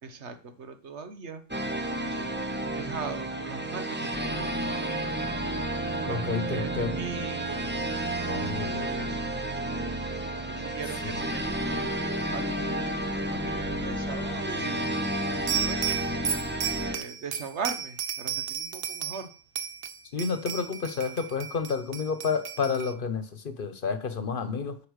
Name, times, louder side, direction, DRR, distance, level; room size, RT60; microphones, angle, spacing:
voice 1, 0.0-1.4 1.9-4.5 6.0-7.7 8.6-9.3 10.5-11.9 12.3-14.9 15.5-16.1 16.8-19.3, right 5 dB, 85° right, 9 dB, 1.4 m, -40 dB
sound 1, 1.5-17.0, right 1 dB, 10° right, 0.9 m, -31 dB
voice 2, 6.1-7.0 8.3-9.0 11.0-11.2 20.1-24.8, left 5 dB, 55° left, 11 dB, 1.1 m, -30 dB
sound 2, 15.5-19.3 19.6-22.9, right 8 dB, 60° right, 1.0 m, -33 dB
8.3 x 5.6 x 6.4 m, 0.40 s
omnidirectional pair, 1.1 m